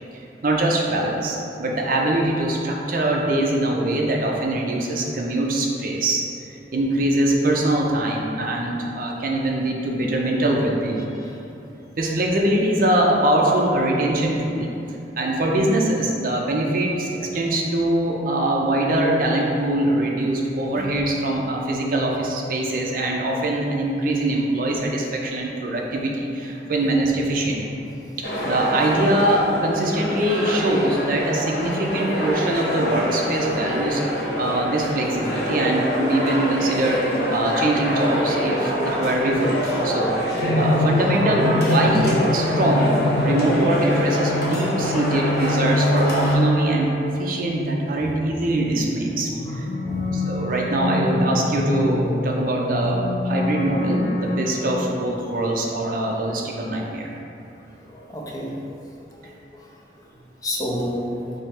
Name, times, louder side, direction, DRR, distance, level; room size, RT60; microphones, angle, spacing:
voice 1, 0.4-11.1 12.0-14.7 15.2-27.8 28.4-37.0 37.3-39.5 39.8-42.9 43.2-49.7 50.1-57.1, right 1 dB, 50° right, -1 dB, 0.5 m, -23 dB
sound 1, 28.2-46.3, equal, 65° left, 0.9 m, -26 dB
sound 2, 40.4-47.9 49.1-55.1, left 1 dB, 80° left, 0.5 m, -25 dB
voice 2, 49.8-50.1 57.9-58.6 59.2-59.7 60.4-61.2, equal, 20° left, -2 dB, 0.5 m, -30 dB
5.3 x 2.0 x 4.3 m, 2.8 s
head